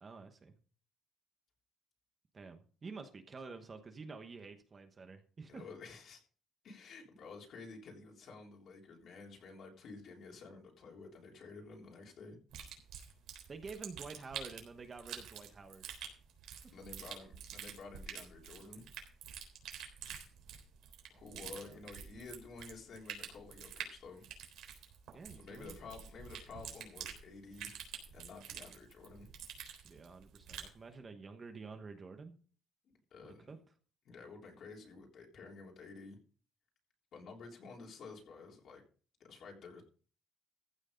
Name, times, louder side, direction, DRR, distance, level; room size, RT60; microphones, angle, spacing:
voice 1, 0.0-0.5 2.3-5.6 13.5-15.9 16.5-16.8 21.4-21.8 25.1-26.0 29.8-32.3 33.2-33.6, right 4 dB, 25° right, 6 dB, 1.1 m, -49 dB
voice 2, 5.5-6.2 6.6-12.4 16.7-18.9 21.1-24.2 25.3-27.7 28.1-29.3 33.1-33.5 34.1-36.2 37.1-38.8 39.2-39.8, left 4 dB, 50° left, 0 dB, 3.5 m, -51 dB
sound 1, 12.5-30.8, right 8 dB, 90° right, 3.7 m, -48 dB
15.0 x 6.3 x 5.2 m, 0.41 s
cardioid pair, 170°, 0 cm